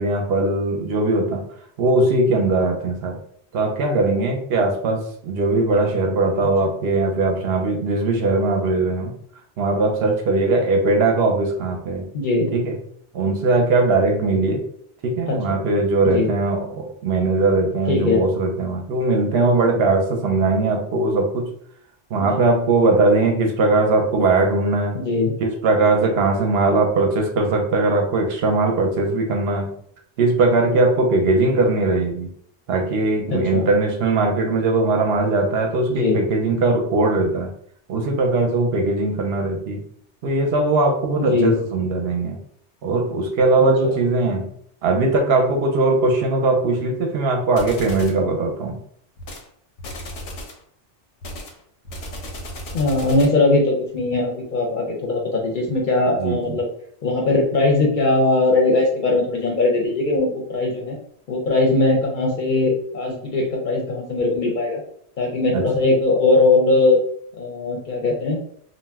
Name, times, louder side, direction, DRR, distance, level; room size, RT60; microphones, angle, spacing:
voice 1, 0.0-1.4 1.8-3.2 3.5-9.1 9.6-12.1 12.5-12.8 13.1-14.7 15.0-21.5 22.1-25.0 25.4-29.8 30.2-32.3 32.7-37.5 37.9-39.9 40.2-42.4 42.8-44.5 44.8-48.8 56.2-56.6 65.5-65.6, right 2 dB, 65° right, 3 dB, 0.7 m, -20 dB
voice 2, 12.1-12.5 15.3-15.4 16.1-16.3 17.9-18.2 22.1-22.2 24.9-25.3 33.3-33.7 35.9-36.2 41.2-41.5 52.7-56.7 57.0-61.0 61.3-64.8 65.2-67.0 67.4-68.4, left 2 dB, 55° left, 0 dB, 0.6 m, -20 dB
sound 1, 47.6-48.2 49.2-49.5 49.8-50.6 51.2-53.4, equal, 90° left, 1.0 m, -35 dB
2.5 x 2.1 x 3.3 m, 0.62 s
omnidirectional pair, 1.2 m